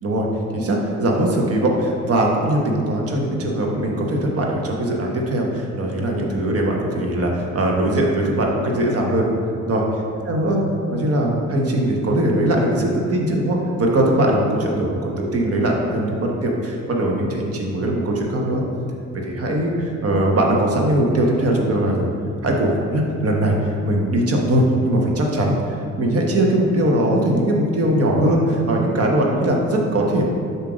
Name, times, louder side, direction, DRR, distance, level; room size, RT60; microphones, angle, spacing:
voice 1, 0.5-9.3 9.7-9.8 10.3-10.6 10.9-18.6 19.2-22.1 22.4-25.6 26.0-30.2, right 1 dB, 50° right, 0 dB, 1.1 m, -20 dB
7.4 x 2.8 x 5.0 m, 2.5 s
cardioid pair, 90°, 30 cm